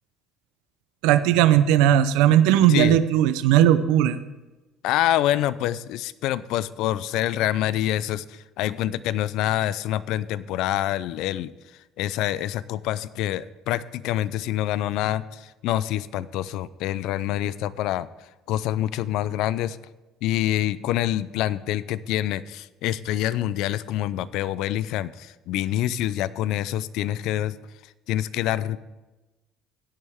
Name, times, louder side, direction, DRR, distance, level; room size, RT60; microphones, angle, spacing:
voice 1, 1.0-4.2, right 11 dB, 90° right, 13 dB, 0.6 m, -18 dB
voice 2, 2.7-3.0 4.8-11.5 12.0-18.1 18.5-19.8 20.2-27.6 28.1-28.8, left 13 dB, 65° left, 18 dB, 0.4 m, -26 dB
16.0 x 9.8 x 3.6 m, 1.1 s
cardioid pair, 150°, 0 cm